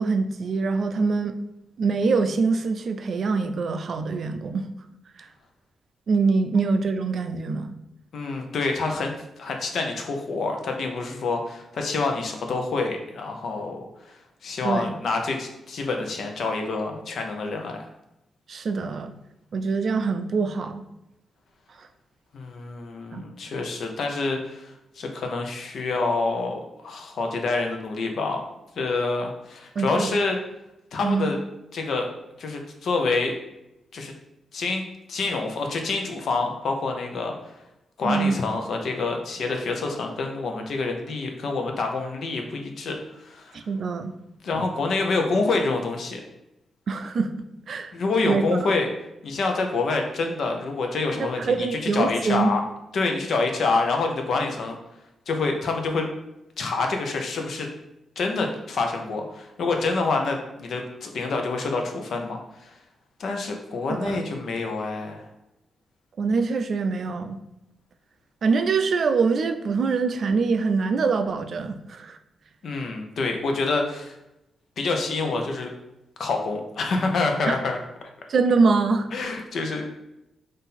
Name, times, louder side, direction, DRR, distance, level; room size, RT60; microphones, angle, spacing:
voice 1, 0.0-1.3 1.8-4.7 6.1-7.7 14.6-14.9 18.5-19.1 19.5-20.8 23.1-23.3 29.8-30.2 31.0-31.3 38.0-38.4 43.5-44.1 44.5-44.6 46.9-47.3 47.7-47.9 48.2-48.4 51.4-52.5 63.9-64.2 66.2-67.4 68.4-72.2 77.5-77.6 78.3-79.1, right 4 dB, 60° right, 8 dB, 0.4 m, -24 dB
voice 2, 8.1-9.1 9.4-13.8 14.4-17.8 22.3-28.4 28.8-30.4 30.9-31.4 31.7-32.1 32.4-33.3 33.9-34.1 34.5-37.3 38.0-43.0 43.2-43.6 44.4-46.2 47.9-48.9 49.2-51.7 51.9-52.6 52.9-54.8 55.3-56.1 56.6-57.7 58.2-62.7 63.2-65.2 72.6-74.1 74.8-75.7 76.2-77.8 79.1-79.8, left 3 dB, 70° left, 3 dB, 0.7 m, -27 dB
3.8 x 2.6 x 4.1 m, 0.89 s
cardioid pair, 85°, 0 cm